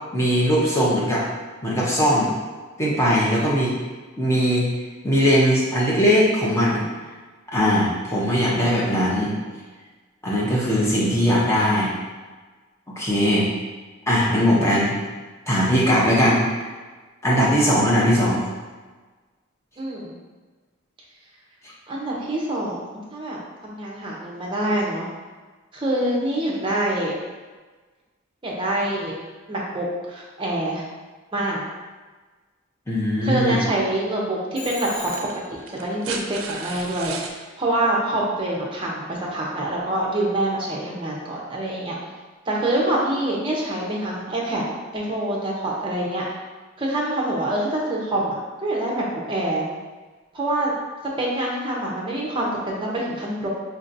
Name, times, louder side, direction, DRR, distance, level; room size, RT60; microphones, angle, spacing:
voice 1, 0.1-1.2 1.6-2.3 2.8-3.7 4.2-4.7 5.0-6.8 7.5-9.3 10.2-11.9 13.0-13.5 14.1-15.0 15.5-16.5 17.2-18.5 32.9-33.6, equal, 15° left, -6 dB, 0.7 m, -20 dB
voice 2, 19.8-20.2 21.9-25.1 25.7-27.1 28.4-29.2 29.5-30.8 31.3-31.6 33.2-42.0 42.5-44.6 44.9-46.3 46.8-49.7 50.3-50.7 51.2-53.5, right 1 dB, 25° right, -3 dB, 0.7 m, -26 dB
sound 1, 33.8-33.9 34.9-37.4 38.9-39.0, right 4 dB, 80° right, 0.4 m, -35 dB
Telephone, 34.6-35.6, left 2 dB, 90° left, 1.5 m, -36 dB
4.4 x 2.8 x 2.5 m, 1.3 s
head